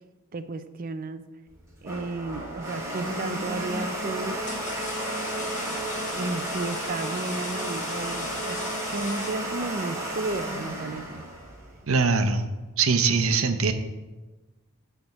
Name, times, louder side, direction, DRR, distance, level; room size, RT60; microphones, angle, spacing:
voice 1, 0.3-1.2 1.8-4.4 6.1-8.6 8.9-11.2, right 3 dB, 40° right, 11 dB, 0.5 m, -33 dB
Domestic sounds home sounds, 1.5-12.2, right 1 dB, 15° right, 1.8 m, -33 dB
sound 1, 4.4-9.9, left 4 dB, 35° left, 1.3 m, -40 dB
voice 2, 11.9-12.5 12.8-13.7, right 4 dB, 70° right, 8 dB, 0.8 m, -22 dB
10.5 x 3.5 x 7.1 m, 1.2 s
head